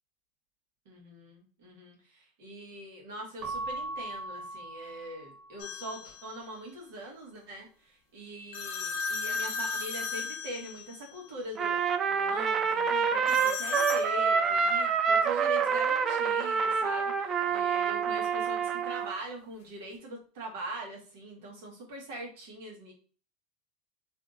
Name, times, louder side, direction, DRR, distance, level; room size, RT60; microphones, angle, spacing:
voice 1, 0.8-22.9, right 1 dB, 70° right, -1 dB, 1.4 m, -42 dB
Keyboard (musical) / Bell, 3.4-5.8, right 2 dB, 50° right, 0.8 m, -39 dB
sound 1, 5.6-6.3 8.5-11.2 13.3-14.1, left 4 dB, 70° left, 0.6 m, -35 dB
Trumpet, 11.6-19.1, right 6 dB, 30° right, 0.3 m, -27 dB
3.4 x 2.7 x 2.5 m, 0.40 s
hypercardioid pair, 100°, 0 cm